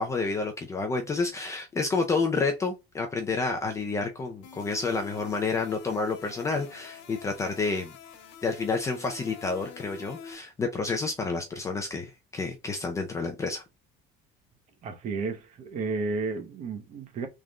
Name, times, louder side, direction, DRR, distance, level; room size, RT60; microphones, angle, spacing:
voice 1, 0.0-7.9 8.4-13.6, left 4 dB, 15° left, 0.5 m, -29 dB
sound 1, 4.4-10.3, left 7 dB, 60° left, 1.3 m, -46 dB
voice 2, 14.8-17.3, right 4 dB, 35° right, 0.9 m, -32 dB
3.7 x 3.2 x 2.4 m
cardioid pair, 175°, 20 cm